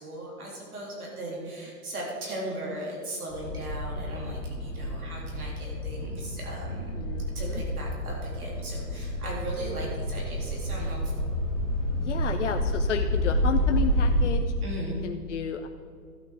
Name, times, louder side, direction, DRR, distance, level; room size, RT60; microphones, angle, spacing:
voice 1, 0.0-6.9 7.4-11.3 14.6-15.0, right 1 dB, 65° right, -2 dB, 3.5 m, -37 dB
sound 1, 3.3-14.3, equal, 5° left, 1.2 m, -29 dB
voice 2, 6.9-7.6 12.0-14.4 15.0-15.7, left 7 dB, 50° left, 4 dB, 0.6 m, -32 dB
13.0 x 8.5 x 4.8 m, 2.2 s
hypercardioid pair, 175°, 48 cm